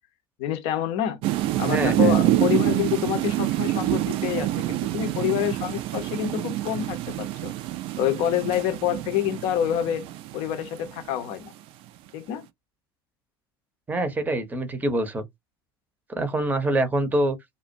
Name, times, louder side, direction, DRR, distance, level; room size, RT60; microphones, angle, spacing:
voice 1, 0.4-1.2 1.6-7.5 8.0-10.0 10.3-11.5 12.1-12.5, left 11 dB, 50° left, 0.6 m, -27 dB
sound 1, 1.2-11.3, right 15 dB, 45° right, 0.3 m, -26 dB
voice 2, 1.6-2.2 13.9-15.2 16.1-17.4, right 1 dB, 15° right, 0.7 m, -25 dB
2.4 x 2.1 x 2.5 m
figure-of-eight pair, 70°, 13 cm